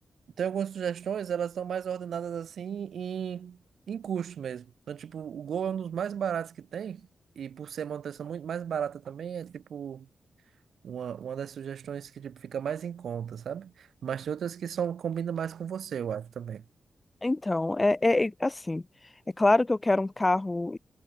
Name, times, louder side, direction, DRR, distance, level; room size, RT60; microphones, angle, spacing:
voice 1, 0.4-3.6 3.9-7.1 7.3-10.1 10.8-16.6, right 8 dB, 85° right, 1.7 m, -34 dB
voice 2, 17.2-18.8 19.4-20.8, left 2 dB, 20° left, 0.8 m, -25 dB
wide cardioid pair, 100°, 0 cm